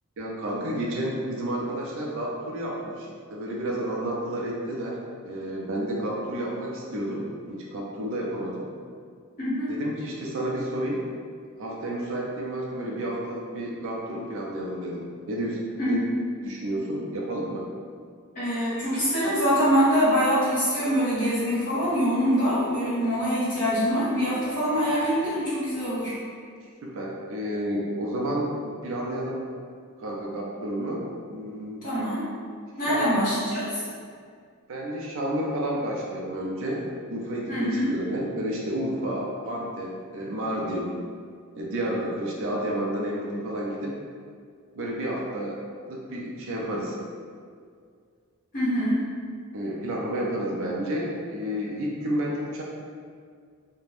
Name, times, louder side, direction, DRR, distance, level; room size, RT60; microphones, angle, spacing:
voice 1, 0.2-5.0 5.2-8.7 9.7-11.0 11.6-15.6 15.8-16.1 16.4-17.7 26.8-29.4 30.0-31.8 32.9-33.0 34.7-36.8 37.1-41.0 41.6-43.9 44.8-47.0 49.5-52.6, right 1 dB, 60° right, -3 dB, 0.4 m, -31 dB
voice 2, 9.4-9.7 15.8-16.2 18.3-26.1 31.8-32.2 32.8-33.8 37.5-37.9 48.5-49.0, equal, 40° left, -11 dB, 1.3 m, -24 dB
2.4 x 2.1 x 3.2 m, 2.1 s
head